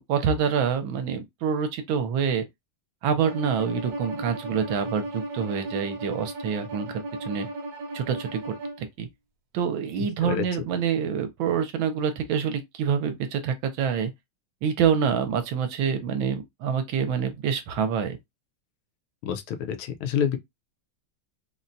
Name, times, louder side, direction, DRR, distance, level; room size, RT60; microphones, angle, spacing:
voice 1, 0.0-2.4 3.0-7.5 7.9-9.1 9.5-14.1 14.6-18.2, right 7 dB, 80° right, 1.3 m, -26 dB
Bowed string instrument, 3.2-8.8, right 2 dB, 55° right, 1.2 m, -35 dB
voice 2, 10.0-10.4 19.2-20.4, left 8 dB, 80° left, 1.4 m, -28 dB
4.0 x 2.1 x 2.6 m
omnidirectional pair, 2.2 m